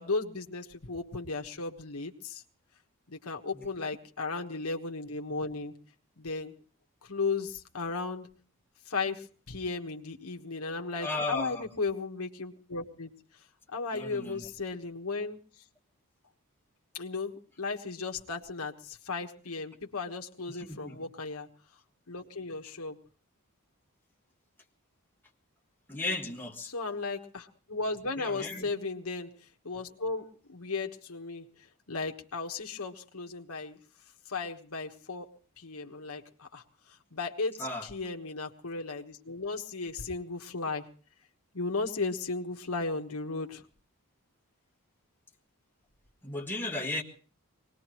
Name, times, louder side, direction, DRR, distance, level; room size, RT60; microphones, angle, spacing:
voice 1, 0.0-2.4 3.1-5.7 6.2-6.5 7.0-8.3 8.9-13.1 13.7-15.4 16.9-21.5 22.1-23.0 26.7-29.3 29.6-31.5 31.9-33.8 34.3-35.3 35.6-36.6 37.1-40.8 41.5-43.6, left 3 dB, 70° left, 3 dB, 1.4 m, -35 dB
voice 2, 11.0-11.7 13.9-14.5 20.5-21.1 25.9-26.7 28.2-28.7 37.6-37.9 46.2-47.0, left 2 dB, 10° left, -1 dB, 1.6 m, -35 dB
23.5 x 20.0 x 3.0 m, 0.40 s
head